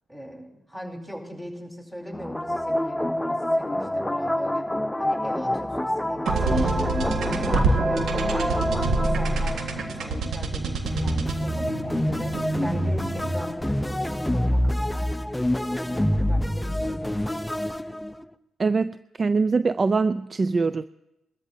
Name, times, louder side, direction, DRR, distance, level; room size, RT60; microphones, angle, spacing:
voice 1, 0.1-4.7 5.0-6.8 7.2-8.7 9.0-15.1 15.5-17.2, equal, 10° right, 0 dB, 4.5 m, -39 dB
sound 1, 2.1-10.3 10.8-18.2, left 1 dB, 10° left, 0.6 m, -27 dB
sound 2, 6.3-13.6, right 3 dB, 70° right, 1.6 m, -27 dB
voice 2, 18.6-20.8, right 4 dB, 40° right, 13 dB, 0.4 m, -23 dB
21.0 x 13.5 x 2.7 m, 0.90 s
supercardioid pair, 60°, 0 cm